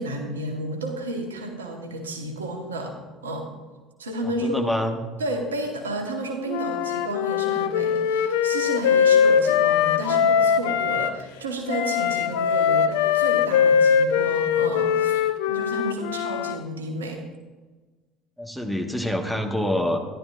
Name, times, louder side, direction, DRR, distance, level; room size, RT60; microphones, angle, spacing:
voice 1, 0.0-3.0 3.2-3.5 4.0-4.6 5.2-17.2, right 1 dB, 80° right, 2 dB, 1.2 m, -31 dB
voice 2, 4.2-5.0 18.4-20.0, left 1 dB, ahead, 3 dB, 1.4 m, -26 dB
Wind instrument woodwind instrument, 6.5-11.1 11.7-16.6, left 8 dB, 70° left, 0.4 m, -21 dB
13.0 x 11.0 x 2.4 m, 1.3 s
figure-of-eight pair, 60°, 0 cm